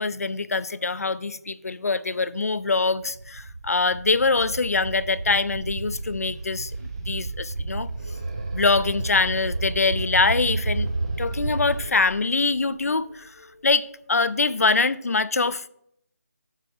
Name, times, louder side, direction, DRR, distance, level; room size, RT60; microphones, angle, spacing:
voice 1, 0.0-6.7 7.1-7.9 8.5-10.9 11.2-15.7, left 4 dB, 65° left, 0.5 m, -24 dB
sound 1, 2.9-11.9, right 3 dB, 75° right, 0.6 m, -31 dB
sound 2, 5.8-14.6, right 1 dB, 20° right, 0.8 m, -44 dB
7.4 x 6.3 x 4.8 m
figure-of-eight pair, 180°, 9 cm